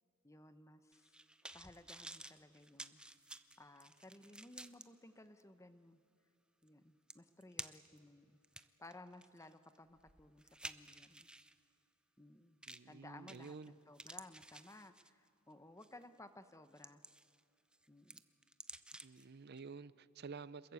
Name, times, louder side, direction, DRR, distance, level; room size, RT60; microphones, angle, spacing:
voice 1, 0.2-1.2 1.5-3.0 3.6-6.0 6.6-11.3 12.2-12.6 12.9-17.0 17.9-18.2, left 2 dB, 15° left, 11 dB, 1.0 m, -58 dB
sound 1, 0.9-4.8 5.4-5.5 6.7-6.8 7.1-8.0 8.4-11.5 12.6-12.9 13.3-13.7 13.9-15.3 15.8-16.0 16.5-17.4 17.7-19.2 19.6-19.7, right 1 dB, 5° right, 0.6 m, -52 dB
voice 2, 12.7-13.7 19.0-20.7, right 4 dB, 50° right, 17 dB, 0.6 m, -51 dB
27.5 x 21.5 x 8.1 m, 2.6 s
head